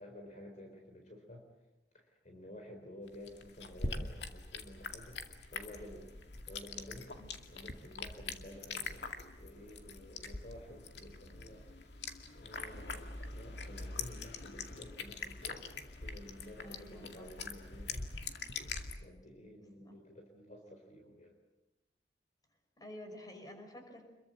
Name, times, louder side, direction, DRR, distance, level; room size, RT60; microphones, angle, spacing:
voice 1, 0.0-1.5 1.9-5.2 5.5-6.1 6.5-7.1 7.5-11.7 12.3-18.1 19.0-21.4, left 1 dB, 45° left, 3 dB, 4.1 m, -52 dB
sound 1, 3.1-18.9, left 4 dB, 70° left, 2.3 m, -44 dB
voice 2, 16.6-17.3 19.8-20.0 22.8-24.0, left 1 dB, 20° left, 5 dB, 5.6 m, -50 dB
27.5 x 22.5 x 7.7 m, 1.0 s
head